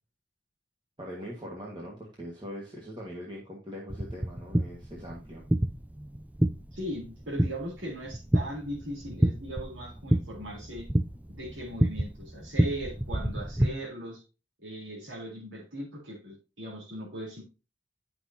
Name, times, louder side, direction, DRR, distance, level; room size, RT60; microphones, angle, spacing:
voice 1, 1.0-5.4, equal, 25° right, -3 dB, 1.5 m, -41 dB
sound 1, 3.9-13.7, right 1 dB, 10° right, 0.4 m, -29 dB
voice 2, 6.7-10.9 11.3-14.2 14.6-17.4, right 1 dB, 90° right, -4 dB, 3.6 m, -39 dB
9.8 x 6.1 x 2.8 m, 0.31 s
head